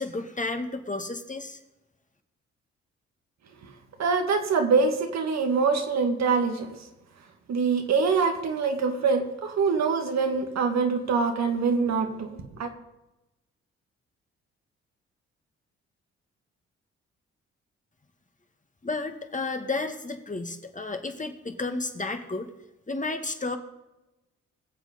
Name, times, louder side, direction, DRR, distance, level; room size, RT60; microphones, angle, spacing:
voice 1, 0.0-1.6 18.8-22.5 22.9-23.6, left 3 dB, 25° left, 6 dB, 2.0 m, -32 dB
voice 2, 4.0-6.8 7.5-12.7, right 5 dB, 65° right, 5 dB, 2.0 m, -24 dB
21.0 x 7.4 x 5.2 m, 0.98 s
hypercardioid pair, 45°, 30 cm